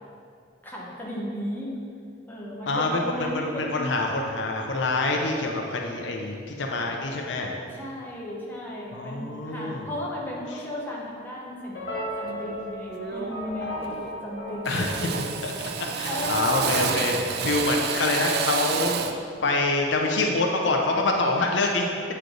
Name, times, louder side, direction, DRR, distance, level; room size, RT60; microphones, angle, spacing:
voice 1, 0.6-1.8 2.3-3.9 7.7-14.0 14.2-15.2 16.1-16.5, left 1 dB, 10° left, -4 dB, 0.9 m, -35 dB
voice 2, 2.7-7.5 8.9-9.9 14.7-14.9 15.4-15.7 16.0-18.9 19.4-21.9, left 2 dB, 80° left, 1 dB, 0.6 m, -26 dB
sound 1, 11.7-16.1, equal, 65° left, 1.3 m, -36 dB
Drill, 12.3-12.6 13.0-13.5 13.7-14.3 14.6-19.3, right 7 dB, 60° right, 0.3 m, -30 dB
8.0 x 3.2 x 3.8 m, 2.3 s
head